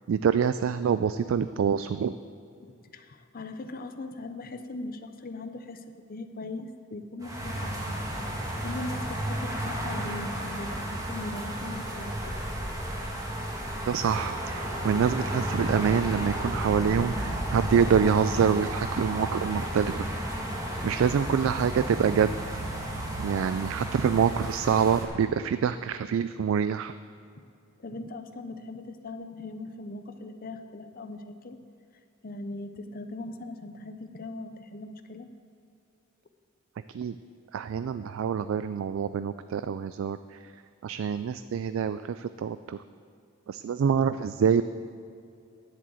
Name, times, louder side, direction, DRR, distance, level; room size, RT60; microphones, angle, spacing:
voice 1, 0.1-2.2 13.9-20.1 20.8-22.3 22.7-26.9 36.9-37.2 37.5-40.5 40.8-42.8 43.5-44.6, right 7 dB, 70° right, 12 dB, 0.3 m, -26 dB
voice 2, 2.6-5.8 6.1-12.4 27.8-31.6 32.2-35.3, left 2 dB, 45° left, 8 dB, 0.6 m, -40 dB
sound 1, 7.2-25.0, right 1 dB, 15° right, 1.6 m, -33 dB
10.5 x 7.8 x 7.6 m, 2.5 s
head